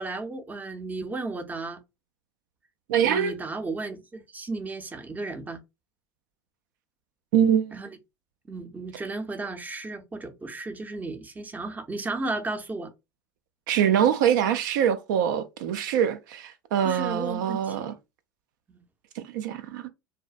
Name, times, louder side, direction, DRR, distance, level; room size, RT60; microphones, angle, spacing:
voice 1, 0.0-1.8 3.0-5.6 7.7-7.9 8.5-12.9 16.8-17.9 18.7-18.8, right 3 dB, 15° right, 0.5 m, -34 dB
voice 2, 2.9-3.4 7.3-7.8 13.7-17.9 19.2-19.9, right 9 dB, 70° right, 0.4 m, -24 dB
2.6 x 2.0 x 2.4 m
hypercardioid pair, 85°, 11 cm